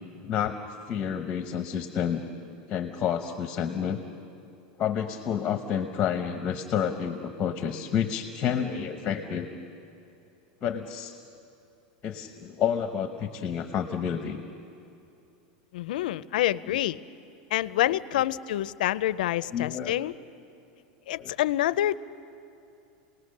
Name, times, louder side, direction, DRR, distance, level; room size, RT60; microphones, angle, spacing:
voice 1, 0.2-0.6 0.9-2.2 2.7-4.0 4.8-9.5 10.6-11.2 12.0-14.4 16.7-16.8 19.5-19.9 21.2-21.3, left 8 dB, 20° left, 7 dB, 0.9 m, -29 dB
voice 2, 15.7-17.0 17.5-20.1 21.1-22.0, left 13 dB, 75° left, 17 dB, 0.5 m, -27 dB
29.5 x 19.0 x 6.6 m, 2.6 s
supercardioid pair, 165°, 5 cm